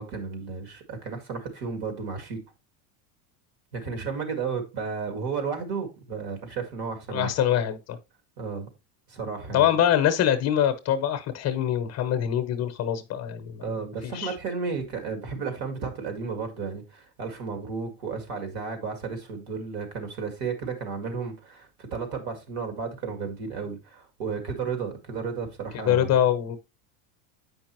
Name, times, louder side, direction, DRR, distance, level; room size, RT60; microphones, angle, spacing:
voice 1, 0.0-2.4 3.7-7.3 8.4-8.7 9.1-9.7 13.6-26.2, right 5 dB, 50° right, 2.2 m, -33 dB
voice 2, 7.1-8.0 9.5-13.7 14.0-14.3 25.8-26.6, left 10 dB, 35° left, 0.8 m, -24 dB
8.3 x 5.3 x 3.0 m
supercardioid pair, 135°, 47 cm